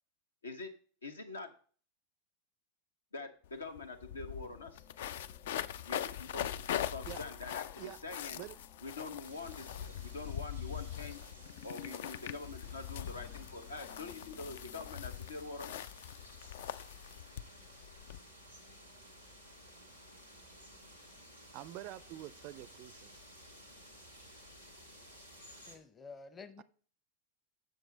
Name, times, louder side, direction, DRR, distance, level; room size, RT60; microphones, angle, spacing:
voice 1, 1.0-1.5 3.1-4.8 5.9-6.5 6.7-8.4 8.8-11.3 11.6-15.9, left 3 dB, 75° left, 1.0 m, -45 dB
sound 1, 3.4-3.5 3.8-18.2, left 10 dB, 55° left, 0.3 m, -42 dB
sound 2, 3.6-15.1, left 5 dB, 35° left, 1.4 m, -61 dB
sound 3, 9.2-25.8, equal, 90° left, 1.6 m, -55 dB
voice 2, 21.5-23.1 26.6-26.7, right 15 dB, 45° right, 0.4 m, -46 dB
voice 3, 25.7-26.6, left 4 dB, 20° left, 0.8 m, -50 dB
7.8 x 6.6 x 3.8 m
figure-of-eight pair, 90°, 0 cm